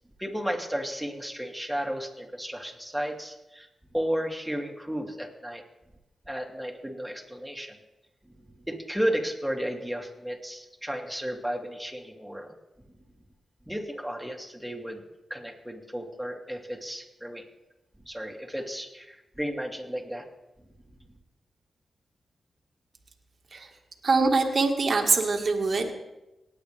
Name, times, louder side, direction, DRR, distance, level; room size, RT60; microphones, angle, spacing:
voice 1, 0.2-3.7 3.9-5.6 6.3-7.8 8.4-12.5 13.7-15.0 15.3-17.4 18.1-20.2, equal, 5° right, 1 dB, 2.7 m, -33 dB
voice 2, 24.0-25.9, right 3 dB, 60° right, 2 dB, 1.7 m, -23 dB
19.0 x 8.7 x 3.5 m, 0.97 s
supercardioid pair, 40°, 0 cm